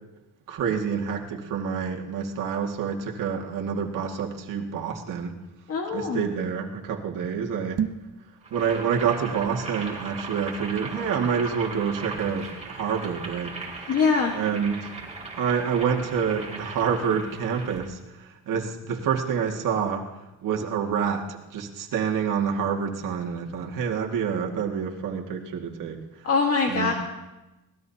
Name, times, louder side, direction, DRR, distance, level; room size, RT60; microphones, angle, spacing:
voice 1, 0.5-5.4 5.9-7.8 8.5-13.6 14.3-14.8 15.4-20.1 20.4-26.0 26.7-26.9, right 7 dB, 60° right, 1 dB, 2.0 m, -27 dB
voice 2, 5.7-6.3 13.9-14.4 26.2-26.9, left 4 dB, 40° left, 1 dB, 1.6 m, -23 dB
sound 1, 7.7-8.2, right 8 dB, 45° right, 0.8 m, -29 dB
Boiling, 8.4-17.9, right 3 dB, 20° right, 3.0 m, -38 dB
25.0 x 19.0 x 2.8 m, 1.0 s
cardioid pair, 165°, 36 cm